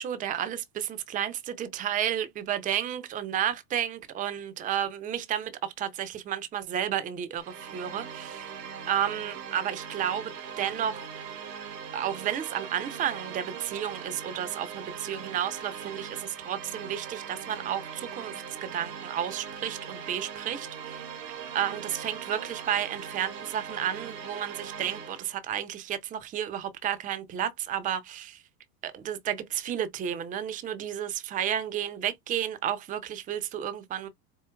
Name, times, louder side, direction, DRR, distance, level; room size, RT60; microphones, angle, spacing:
voice 1, 0.0-8.5 8.9-11.0 11.9-21.1 21.5-28.4 28.8-34.1, right 10 dB, 15° right, 0.5 m, -32 dB
sound 1, 7.4-25.3, right 7 dB, 80° right, 1.2 m, -40 dB
4.6 x 2.7 x 2.3 m
hypercardioid pair, 100°, 49 cm